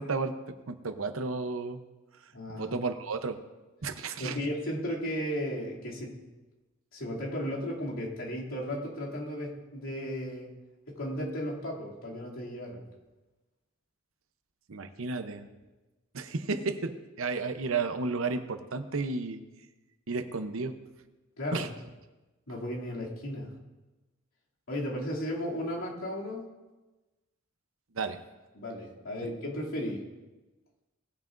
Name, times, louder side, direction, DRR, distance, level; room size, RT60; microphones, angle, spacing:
voice 1, 0.0-1.8 2.6-3.4 3.8-4.4 14.7-15.5 16.1-19.4 20.1-20.8 21.5-21.7 27.9-28.2, right 4 dB, 75° right, 9 dB, 0.8 m, -32 dB
voice 2, 2.3-2.8 4.2-6.2 6.9-10.5 10.9-12.8 21.4-21.7 22.5-23.6 24.7-26.5 28.5-30.1, equal, 80° left, -5 dB, 2.7 m, -35 dB
18.5 x 9.2 x 2.6 m, 1.1 s
head